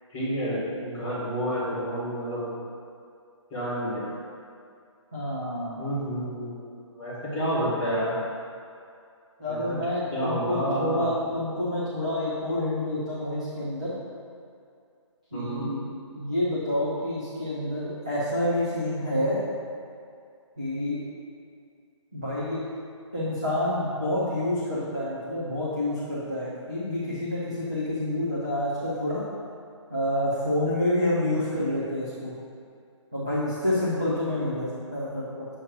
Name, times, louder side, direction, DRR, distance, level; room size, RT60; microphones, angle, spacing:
voice 1, 0.1-2.5 3.5-4.1 5.8-6.7 6.9-8.2 9.5-9.8 10.1-11.1 15.3-15.7, equal, 5° left, -14 dB, 0.9 m, -29 dB
voice 2, 5.1-5.8 9.4-13.9 15.3-15.9 16.1-19.4 20.6-21.0 22.1-22.6 23.1-29.2 29.9-32.3 33.1-35.6, left 1 dB, 15° right, -12 dB, 0.3 m, -28 dB
7.0 x 2.8 x 5.0 m, 2.4 s
hypercardioid pair, 180°, 16 cm